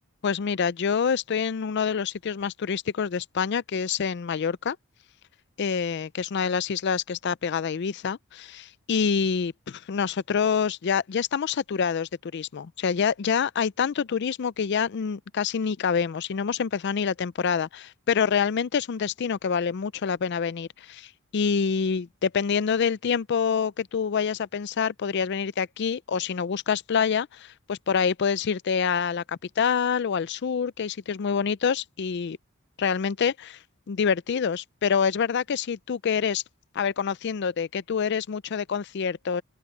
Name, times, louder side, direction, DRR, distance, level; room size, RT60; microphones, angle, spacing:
voice 1, 0.2-4.8 5.6-32.4 32.8-33.6 33.9-36.4 36.7-39.4, left 6 dB, 55° left, 0.4 m, -26 dB
open air
head